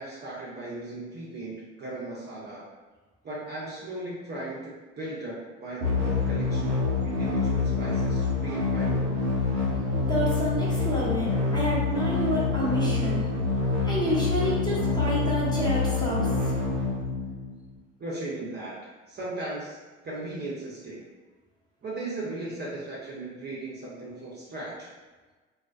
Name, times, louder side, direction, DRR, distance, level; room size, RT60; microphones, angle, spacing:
voice 1, 0.0-2.6 3.2-9.2 18.0-18.8 19.1-19.8 20.0-21.0 21.8-24.9, right 2 dB, 30° right, -6 dB, 0.7 m, -37 dB
sound 1, 5.8-17.7, left 4 dB, 90° right, 0.6 m, -26 dB
voice 2, 10.1-13.2 13.8-16.5, equal, 10° left, -6 dB, 0.9 m, -29 dB
2.3 x 2.1 x 2.4 m, 1.3 s
hypercardioid pair, 60°, 35 cm